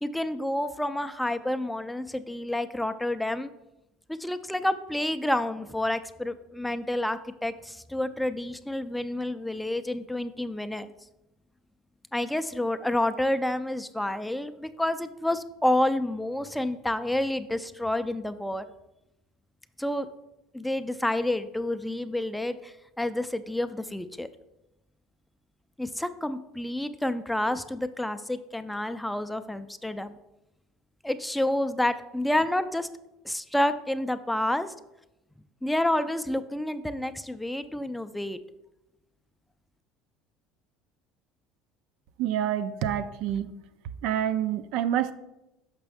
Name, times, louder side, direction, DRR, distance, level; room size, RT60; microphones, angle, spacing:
voice 1, 0.0-3.5 4.2-10.9 12.1-18.6 19.8-20.1 20.5-24.3 25.8-30.2 31.0-32.9 33.2-34.7 35.6-38.4, left 1 dB, 5° left, 11 dB, 0.4 m, -29 dB
voice 2, 42.2-43.5 44.0-45.1, right 10 dB, 70° right, 12 dB, 0.4 m, -27 dB
6.0 x 5.4 x 3.4 m, 0.91 s
supercardioid pair, 105°, 0 cm